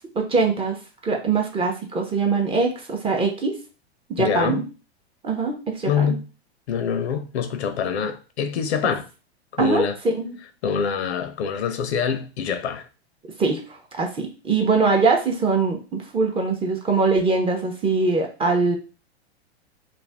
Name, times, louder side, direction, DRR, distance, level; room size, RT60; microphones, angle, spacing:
voice 1, 0.1-0.8 1.0-3.6 4.1-4.6 5.2-6.1 9.6-10.4 13.4-18.8, right 4 dB, 15° right, 0.6 m, -22 dB
voice 2, 4.2-4.6 5.8-6.2 6.7-9.1 9.6-10.0 10.6-12.9, left 7 dB, 75° left, 0.6 m, -25 dB
2.5 x 2.1 x 3.3 m
hypercardioid pair, 110°, 33 cm